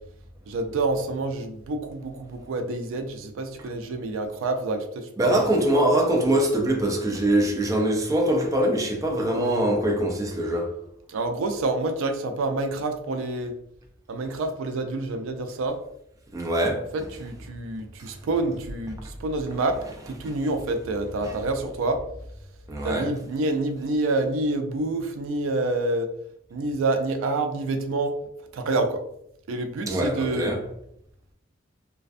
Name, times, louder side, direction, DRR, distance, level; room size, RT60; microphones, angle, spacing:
voice 1, 0.5-5.4 11.1-13.5 14.1-15.8 16.9-19.8 20.1-22.0 22.8-26.1 26.5-28.1 28.5-29.0 29.5-30.6, right 2 dB, 85° right, 0.4 m, -27 dB
voice 2, 5.2-10.7 16.3-16.8 21.2-21.3 22.7-23.1 29.9-30.6, right 1 dB, 15° right, 0.4 m, -23 dB
2.4 x 2.2 x 2.4 m
head